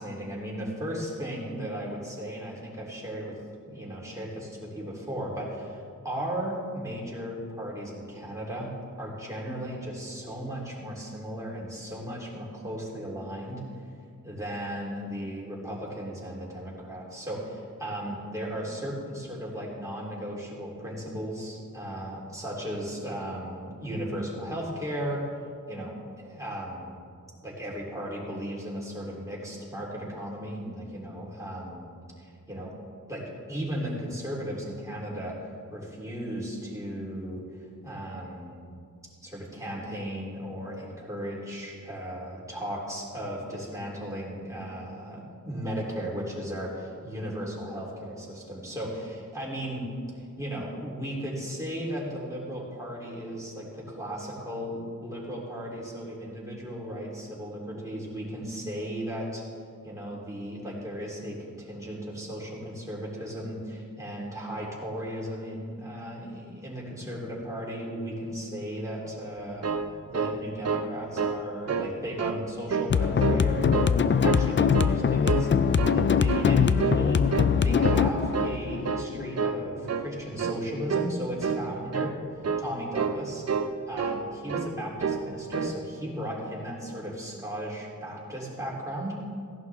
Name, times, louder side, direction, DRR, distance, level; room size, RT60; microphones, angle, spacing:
voice 1, 0.0-3.4 3.6-8.7 9.0-13.6 13.9-25.2 25.7-27.0 27.4-31.9 32.2-32.7 33.1-37.4 37.8-38.7 39.2-49.9 50.1-59.4 59.8-69.7 70.1-77.2 77.6-82.1 82.6-83.4 83.9-89.2, equal, 10° right, -5 dB, 3.4 m, -36 dB
sound 1, 69.4-70.9 71.2-71.4 71.7-72.4 72.7-73.4 73.7-74.5 74.7-75.0 75.3-76.0 76.3-76.5 76.8-77.1 77.3-78.1 78.3-78.6 78.8-79.1 79.4-79.6 79.9-80.1 80.4-80.6 80.9-81.1 81.4-81.6 81.9-82.1 82.4-82.7 82.9-83.2 83.5-84.2 84.5-84.7 85.0-85.3 85.5-85.8, right 5 dB, 45° right, 0.7 m, -29 dB
sound 2, 72.9-79.9, left 7 dB, 35° left, 0.4 m, -23 dB
16.5 x 11.0 x 3.6 m, 2.2 s
wide cardioid pair, 105°, 34 cm